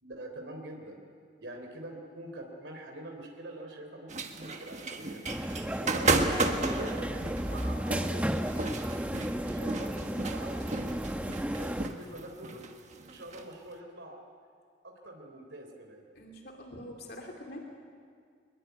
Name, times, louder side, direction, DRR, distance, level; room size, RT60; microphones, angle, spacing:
voice 1, 0.0-1.1 1.4-5.2 5.6-8.6 9.4-12.7 13.0-14.2 14.8-16.1, right 1 dB, 75° right, 3 dB, 3.4 m, -45 dB
sound 1, 4.1-13.4, right 3 dB, 40° right, 1.5 m, -33 dB
sound 2, 5.2-11.9, equal, 10° right, 0.9 m, -33 dB
voice 2, 16.1-17.6, left 1 dB, 55° left, 1 dB, 2.7 m, -45 dB
23.0 x 22.0 x 9.2 m, 2.1 s
head